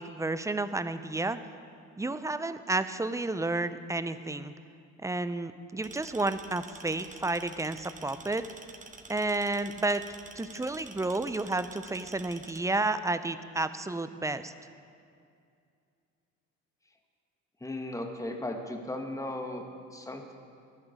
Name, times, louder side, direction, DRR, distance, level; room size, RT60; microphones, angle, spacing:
voice 1, 0.0-1.4 2.0-4.5 5.0-8.4 9.1-10.0 10.4-14.5, right 2 dB, 10° right, 12 dB, 0.5 m, -31 dB
sound 1, 5.8-12.6, right 4 dB, 25° right, 0.9 m, -49 dB
voice 2, 17.6-20.3, left 1 dB, 10° left, 3 dB, 1.4 m, -36 dB
12.0 x 11.0 x 5.1 m, 2.4 s
cardioid pair, 90°, 30 cm